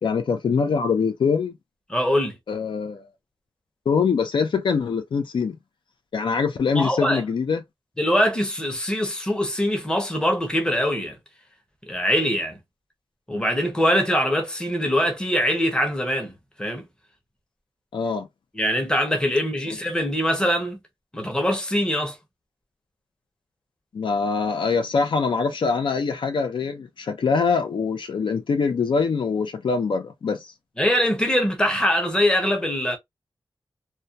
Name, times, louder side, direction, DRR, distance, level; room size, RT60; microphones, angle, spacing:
voice 1, 0.0-1.5 2.5-3.0 3.9-5.6 6.1-7.6 17.9-18.3 23.9-30.5, left 5 dB, 75° left, 0.5 m, -23 dB
voice 2, 1.9-2.4 6.8-7.2 8.0-11.2 11.9-12.6 13.3-16.8 18.5-20.8 21.1-22.2 30.8-33.0, equal, 10° left, 0.7 m, -23 dB
2.3 x 2.2 x 2.5 m
wide cardioid pair, 125°, 8 cm